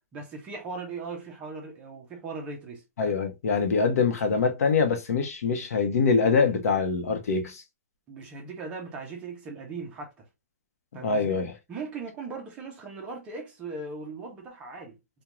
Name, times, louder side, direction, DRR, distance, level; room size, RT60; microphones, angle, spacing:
voice 1, 0.0-2.8 8.1-10.3 10.9-11.4 11.7-15.0, right 4 dB, 15° right, 0.5 m, -38 dB
voice 2, 3.0-7.6 11.0-11.5, left 5 dB, 80° left, 0.7 m, -24 dB
2.4 x 2.2 x 2.8 m
hypercardioid pair, 175°, 8 cm